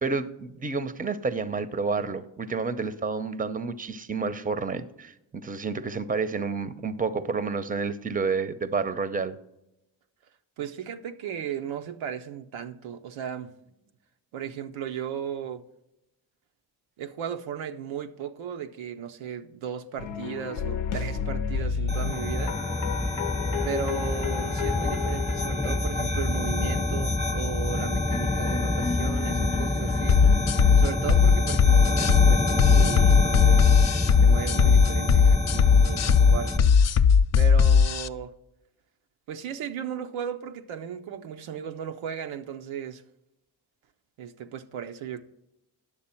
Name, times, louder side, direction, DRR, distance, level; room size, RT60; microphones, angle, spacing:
voice 1, 0.0-9.4, right 4 dB, 20° right, 0.6 m, -30 dB
voice 2, 10.6-13.5 14.3-15.6 17.0-22.6 23.6-30.2 30.8-33.8 34.2-36.7 37.4-38.3 39.3-43.0 44.2-45.2, right 8 dB, 90° right, 0.6 m, -36 dB
sound 1, 20.0-26.4 27.8-31.4, left 6 dB, 80° left, 0.7 m, -33 dB
sound 2, 21.9-36.6, left 2 dB, 15° left, 0.9 m, -27 dB
sound 3, 30.1-38.1, left 6 dB, 40° left, 0.4 m, -18 dB
9.7 x 6.7 x 4.3 m
supercardioid pair, 45°, 46 cm